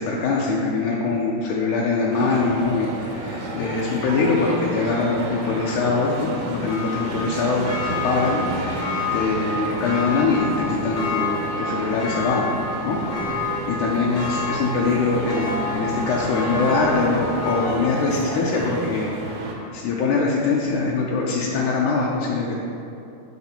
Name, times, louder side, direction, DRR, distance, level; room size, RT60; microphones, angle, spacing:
voice 1, 0.0-8.8 9.1-12.5 12.8-13.0 13.3-19.1 19.7-22.6, left 4 dB, 80° left, -4 dB, 2.1 m, -23 dB
sound 1, 2.1-19.5, right 2 dB, 75° right, 1.9 m, -32 dB
Church bell, 5.5-19.2 19.6-19.7, left 3 dB, 60° left, 1.1 m, -30 dB
7.8 x 4.1 x 4.2 m, 2.7 s
omnidirectional pair, 3.6 m